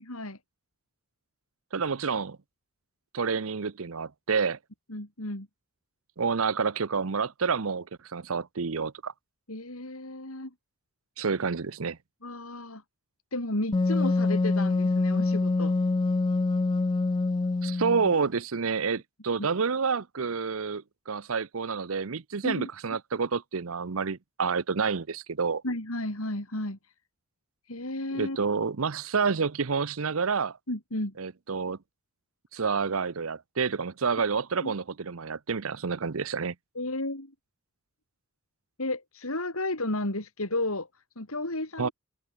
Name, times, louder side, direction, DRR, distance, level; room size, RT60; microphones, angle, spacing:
voice 1, 1.7-2.4 3.1-4.6 6.2-9.1 11.2-12.0 17.6-25.6 28.1-30.6 31.2-31.8 32.5-36.5 41.8-41.9, right 5 dB, 70° right, 0.8 m, -29 dB
voice 2, 4.9-5.5 9.5-10.5 12.2-12.8 13.3-15.7 22.4-22.7 25.6-26.8 27.7-28.4 30.7-31.1 34.6-34.7 36.7-37.3 38.8-40.9 41.2-41.9, left 1 dB, 75° left, 4.9 m, -33 dB
Wind instrument woodwind instrument, 13.7-18.2, left 3 dB, 20° left, 0.3 m, -25 dB
head